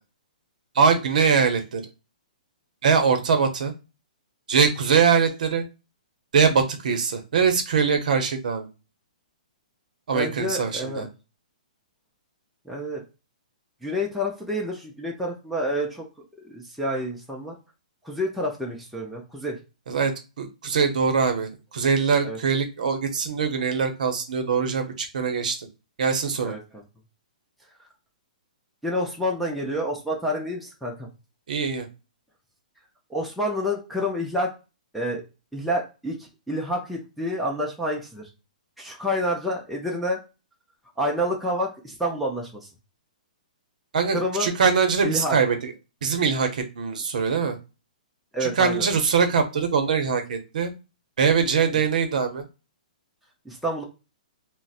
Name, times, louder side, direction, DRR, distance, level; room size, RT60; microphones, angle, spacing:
voice 1, 0.7-1.8 2.8-3.7 4.5-5.6 6.3-8.7 10.1-11.1 19.9-20.1 20.4-25.7 26.0-26.5 31.5-31.9 43.9-45.7 46.0-47.6 48.4-50.7 51.2-52.4, right 6 dB, 65° right, 6 dB, 0.7 m, -22 dB
voice 2, 10.1-11.1 12.7-13.0 13.8-16.1 16.4-17.5 18.0-19.6 22.2-22.4 26.4-26.8 28.8-31.1 33.1-34.5 34.9-35.2 35.5-38.2 38.8-40.2 41.0-42.7 44.1-44.5 45.0-45.4 48.3-48.9 53.5-53.8, equal, ahead, -3 dB, 0.4 m, -28 dB
3.9 x 2.0 x 2.4 m, 0.29 s
hypercardioid pair, 165°, 5 cm